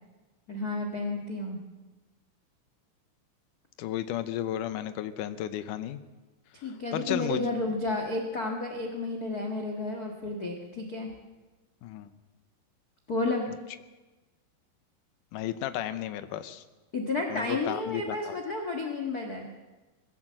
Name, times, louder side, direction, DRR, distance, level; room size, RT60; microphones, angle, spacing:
voice 1, 0.5-1.6 6.6-11.1 13.1-13.5 16.9-19.6, left 2 dB, 55° left, 3 dB, 1.0 m, -31 dB
voice 2, 3.8-6.0 6.6-7.4 11.8-12.1 15.3-16.6 17.3-18.4, left 12 dB, 80° left, 11 dB, 1.8 m, -33 dB
21.0 x 16.5 x 7.7 m, 1.2 s
omnidirectional pair, 4.7 m